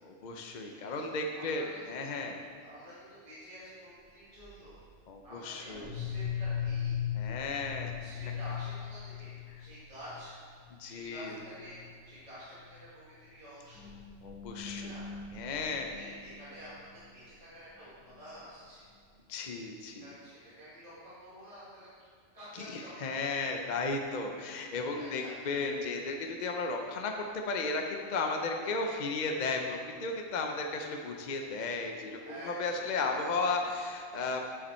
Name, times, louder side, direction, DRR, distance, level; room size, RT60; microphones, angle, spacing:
voice 1, 0.0-2.4 5.1-5.9 7.1-7.9 10.8-11.3 14.2-14.9 15.3-15.9 19.3-20.1 22.5-34.5, left 3 dB, 50° left, 3 dB, 0.6 m, -34 dB
voice 2, 0.7-2.1 2.6-4.8 5.2-7.0 7.5-10.4 10.9-11.8 12.0-12.6 12.9-13.9 14.6-15.1 15.5-16.9 17.1-18.8 19.8-21.9 22.3-23.5 25.0-25.4 28.4-28.7 32.2-33.7, equal, 30° right, -11 dB, 1.9 m, -49 dB
sound 1, 4.4-4.8 5.7-10.2 10.6-10.7 11.0-11.3 11.6-11.9 12.5-12.6 13.6-16.8, left 8 dB, ahead, 1.2 m, -39 dB
7.6 x 7.1 x 4.3 m, 2.1 s
omnidirectional pair, 1.2 m